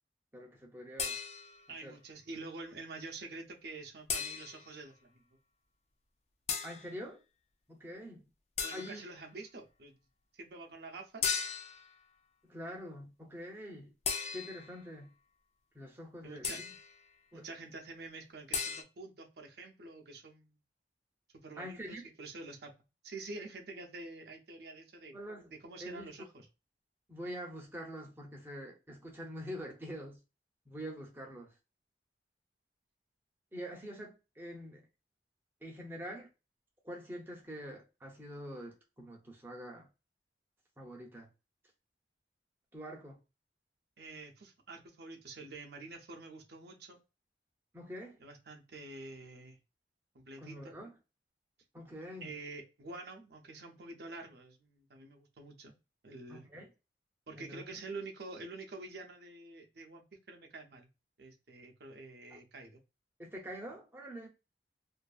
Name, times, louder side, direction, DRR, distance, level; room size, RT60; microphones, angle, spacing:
voice 1, 0.3-1.2 1.8-2.0 6.6-7.2 7.7-8.3 8.7-9.0 12.5-13.9 14.3-15.1 15.7-16.7 17.3-17.5 21.6-22.0 25.1-26.1 27.1-30.2 30.7-31.5 33.5-34.9 35.6-36.3 36.8-39.9 40.8-41.3 42.7-43.2 47.7-48.2 50.4-50.9 51.7-52.3 56.3-56.7 57.4-57.8 62.3-62.4 63.2-64.3, equal, 15° right, 0.7 m, -45 dB
sound 1, 1.0-1.7 4.1-4.7 6.5-6.9 8.6-9.1 11.2-11.9 14.1-14.8 16.4-16.9 18.5-18.8, left 6 dB, 40° left, 0.4 m, -36 dB
voice 2, 1.7-5.4 8.6-10.0 10.3-11.3 16.2-16.6 17.3-20.6 21.3-22.7 23.0-25.1 25.5-26.5 44.0-47.0 48.2-49.6 50.1-50.8 52.2-55.7 56.0-56.4 57.3-60.9 61.2-62.8, right 3 dB, 65° right, 0.6 m, -47 dB
2.6 x 2.5 x 2.3 m
head